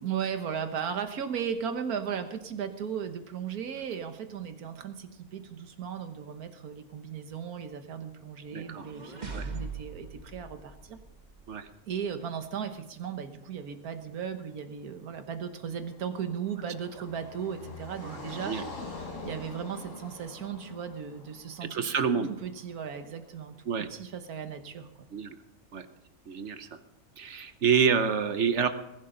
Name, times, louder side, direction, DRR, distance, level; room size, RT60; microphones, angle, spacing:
voice 1, 0.0-11.0 11.9-18.7 19.2-21.8 22.3-24.9, right 7 dB, 85° right, 8 dB, 1.6 m, -36 dB
sound 1, 8.4-11.5, right 3 dB, 30° right, 1.4 m, -41 dB
voice 2, 8.5-8.9 9.3-9.5 11.5-11.7 18.4-18.6 21.7-22.3 23.7-23.9 25.1-25.4 25.7-25.8 26.3-26.7 27.2-28.7, right 6 dB, 55° right, 10 dB, 1.1 m, -27 dB
Car passing by, 15.4-22.6, left 3 dB, 60° left, 2.4 m, -45 dB
20.5 x 11.5 x 3.9 m, 0.89 s
omnidirectional pair, 1.5 m